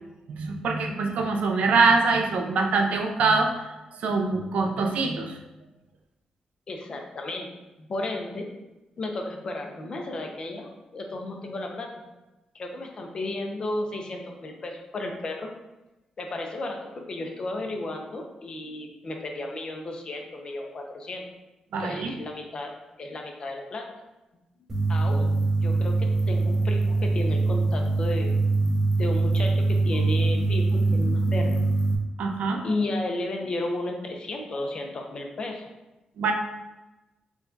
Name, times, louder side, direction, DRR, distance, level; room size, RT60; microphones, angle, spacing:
voice 1, 0.3-3.5 4.0-5.4 21.7-22.1 32.2-32.6 36.2-36.3, right 4 dB, 75° right, 3 dB, 0.4 m, -24 dB
voice 2, 6.7-7.5 7.8-8.5 9.0-11.9 12.5-15.5 16.2-21.2 21.8-22.7 23.0-23.9 24.9-28.3 29.0-31.6 32.6-35.6, left 2 dB, 40° left, 2 dB, 0.5 m, -33 dB
sound 1, 24.7-31.9, right 3 dB, 15° right, 0.6 m, -23 dB
4.5 x 2.2 x 2.6 m, 1.0 s
wide cardioid pair, 140°, 2 cm